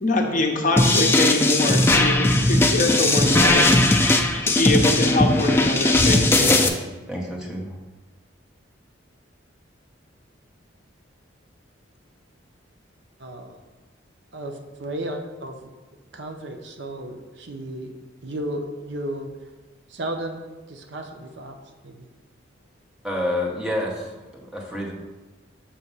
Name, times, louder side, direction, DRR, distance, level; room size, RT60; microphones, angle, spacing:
voice 1, 0.0-3.7 4.4-6.5, left 2 dB, 40° left, 2 dB, 0.7 m, -24 dB
sound 1, 0.8-6.7, left 2 dB, 10° left, 0.3 m, -18 dB
voice 2, 6.4-6.8 7.1-7.7 23.0-24.9, left 1 dB, 5° right, -3 dB, 0.9 m, -29 dB
voice 3, 13.2-13.5 14.3-15.7 16.1-17.9 18.2-19.3 19.9-20.4 20.7-21.6 21.8-22.1, right 1 dB, 60° right, 4 dB, 0.6 m, -33 dB
6.9 x 2.8 x 5.3 m, 1.2 s
head